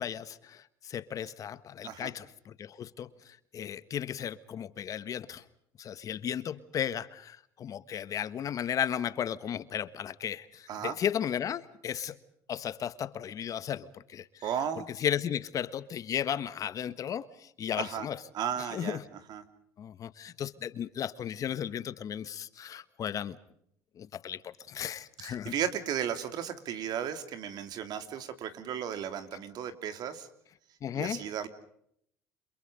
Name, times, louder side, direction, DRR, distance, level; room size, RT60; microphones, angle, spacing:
voice 1, 0.0-5.4 5.8-12.2 12.5-14.3 15.0-18.2 18.7-19.0 19.8-23.4 24.0-25.5 30.8-31.2, left 9 dB, 45° left, 1.5 m, -35 dB
voice 2, 14.4-14.9 17.8-18.1 18.3-19.0 19.3-19.4 25.2-30.3 30.9-31.5, right 9 dB, 60° right, 3.3 m, -35 dB
29.5 x 27.0 x 5.1 m
supercardioid pair, 95°, 8 cm